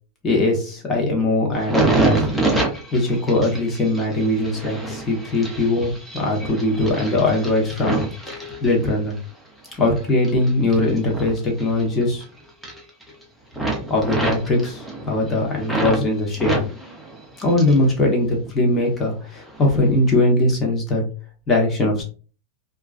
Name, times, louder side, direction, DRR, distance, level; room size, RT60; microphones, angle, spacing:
voice 1, 0.2-2.2 2.9-8.0 8.6-9.2 9.8-12.2 13.9-16.6 17.4-21.0 21.5-22.0, left 2 dB, 20° left, 0 dB, 0.9 m, -20 dB
sound 1, 1.5-9.2 9.6-12.2 12.5-13.2 13.5-16.0 16.3-17.9 18.2-18.9 19.5-19.7, right 2 dB, ahead, 0.6 m, -27 dB
2.4 x 2.2 x 2.3 m, 0.37 s
supercardioid pair, 140°, 0 cm